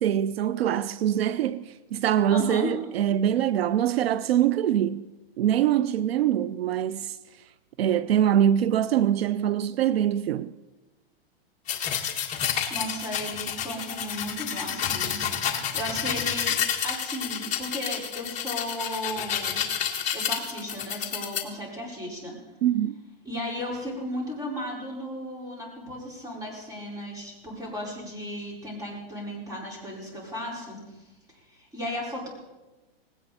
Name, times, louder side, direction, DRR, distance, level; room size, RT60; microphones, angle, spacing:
voice 1, 0.0-5.1 5.4-7.2 7.8-10.5 22.6-23.0, right 10 dB, 75° right, 0.6 m, -24 dB
voice 2, 2.3-2.7 12.7-15.2 15.7-16.6 16.8-19.6 20.1-22.3 23.2-31.0 31.5-32.3, left 1 dB, 10° right, 5.0 m, -35 dB
sound 1, 11.7-21.4, left 8 dB, 25° left, 1.8 m, -30 dB
19.0 x 17.0 x 4.3 m
hypercardioid pair, 150°, 31 cm